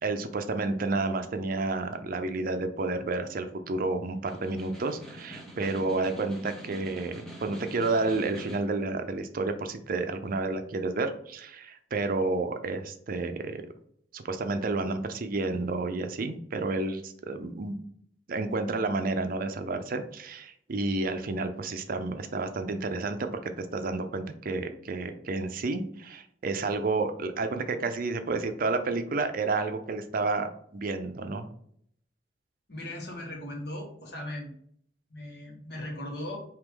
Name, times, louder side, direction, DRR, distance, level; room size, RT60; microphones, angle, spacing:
voice 1, 0.0-13.6 14.1-17.8 18.3-31.5, right 3 dB, 55° right, 8 dB, 0.5 m, -30 dB
Snare drum, 4.3-8.8, equal, 5° left, 0.9 m, -45 dB
voice 2, 32.7-34.5 35.1-36.4, left 1 dB, 65° left, 0 dB, 1.5 m, -38 dB
4.8 x 2.9 x 3.6 m, 0.65 s
head